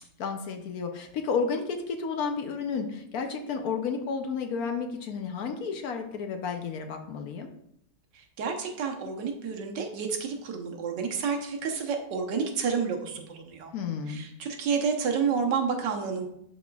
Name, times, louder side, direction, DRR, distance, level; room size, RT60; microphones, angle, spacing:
voice 1, 0.2-7.5 13.7-14.2, left 5 dB, 65° left, 5 dB, 1.0 m, -32 dB
voice 2, 8.1-13.7 14.1-16.3, right 6 dB, 80° right, 3 dB, 1.6 m, -30 dB
11.5 x 4.2 x 2.3 m, 0.76 s
omnidirectional pair, 1.9 m